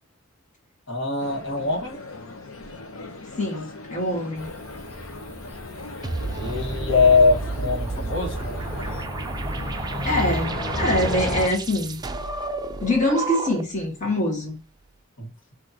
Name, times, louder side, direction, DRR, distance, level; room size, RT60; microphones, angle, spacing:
voice 1, 0.9-2.0 6.3-8.5 15.2-15.3, left 4 dB, 60° left, 1.7 m, -22 dB
sound 1, 1.2-9.1, left 2 dB, 85° left, 1.0 m, -39 dB
voice 2, 3.4-4.5 10.0-12.0 12.8-14.6, left 1 dB, 35° left, 1.6 m, -24 dB
Cricket / Motor vehicle (road), 4.4-11.5, equal, 10° left, 1.8 m, -32 dB
sound 2, 6.0-13.8, right 3 dB, 20° right, 0.4 m, -31 dB
6.4 x 2.8 x 2.9 m
head